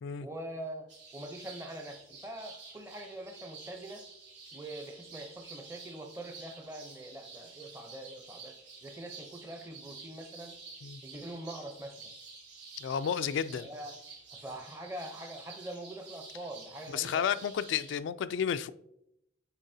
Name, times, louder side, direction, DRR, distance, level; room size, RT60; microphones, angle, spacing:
voice 1, 0.2-4.0 4.5-10.6 11.0-12.1 13.6-14.0 14.3-17.3, right 1 dB, 15° right, 0.6 m, -44 dB
sound 1, 0.9-18.0, right 4 dB, 70° right, 2.7 m, -50 dB
voice 2, 12.8-13.7 16.9-18.7, left 8 dB, 80° left, 0.3 m, -32 dB
8.9 x 4.6 x 2.7 m
head